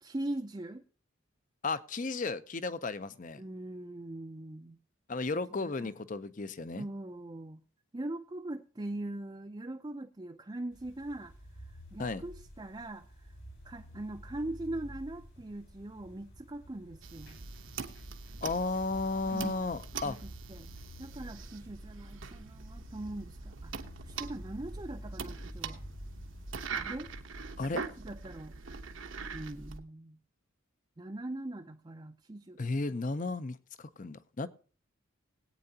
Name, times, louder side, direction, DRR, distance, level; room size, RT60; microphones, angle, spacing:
voice 1, 0.0-0.8 3.4-4.8 5.6-5.9 6.8-7.6 7.9-11.3 11.9-13.0 13.6-17.4 19.3-19.7 20.0-20.7 21.0-25.9 26.7-27.1 27.7-28.6 29.3-30.2 31.0-32.6, right 1 dB, 20° right, 0.5 m, -41 dB
voice 2, 1.6-3.4 5.1-6.9 12.0-12.2 18.4-20.2 27.6-27.8 32.6-34.5, left 3 dB, 40° left, 0.6 m, -34 dB
sound 1, 10.7-27.2, equal, 70° left, 5.7 m, -50 dB
sound 2, 17.0-29.8, right 5 dB, 70° right, 1.0 m, -43 dB
20.0 x 8.9 x 2.8 m
head